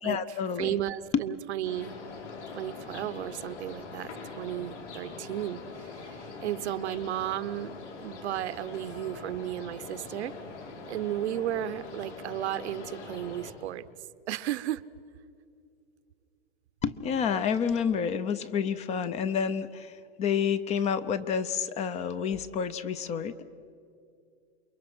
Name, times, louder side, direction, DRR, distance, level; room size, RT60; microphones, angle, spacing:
voice 1, 0.0-0.7 16.8-23.4, left 7 dB, 20° left, 14 dB, 0.6 m, -29 dB
voice 2, 0.6-2.0 2.5-10.4 10.9-13.8 14.3-14.8, right 12 dB, 70° right, 15 dB, 0.9 m, -34 dB
sound 1, 1.6-13.5, left 3 dB, 85° left, 5.0 m, -43 dB
28.5 x 22.5 x 6.1 m, 2.4 s
hypercardioid pair, 145°, 34 cm